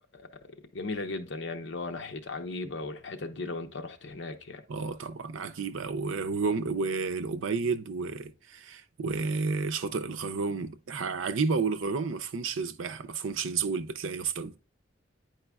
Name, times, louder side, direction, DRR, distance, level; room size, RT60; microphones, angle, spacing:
voice 1, 0.7-4.6, left 3 dB, 70° left, 0.8 m, -36 dB
voice 2, 4.7-14.6, right 4 dB, 90° right, 0.6 m, -31 dB
9.0 x 4.8 x 2.3 m
head